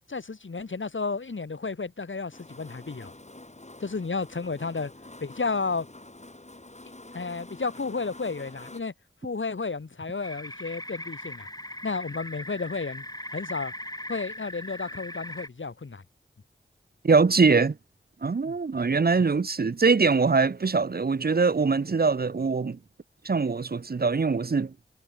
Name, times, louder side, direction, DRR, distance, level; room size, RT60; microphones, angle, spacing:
voice 1, 0.1-3.1 3.8-4.9 5.2-5.9 7.1-8.9 9.2-11.5 11.8-13.0 13.3-13.7 14.1-16.0 18.4-18.5, left 4 dB, 70° left, 3.3 m, -32 dB
sound 1, 2.3-8.8, left 2 dB, 35° left, 6.5 m, -47 dB
sound 2, 10.2-15.5, left 1 dB, 20° left, 7.9 m, -39 dB
voice 2, 17.0-17.8 18.2-22.8 23.2-24.7, right 4 dB, 50° right, 0.8 m, -23 dB
cardioid pair, 40°, 21 cm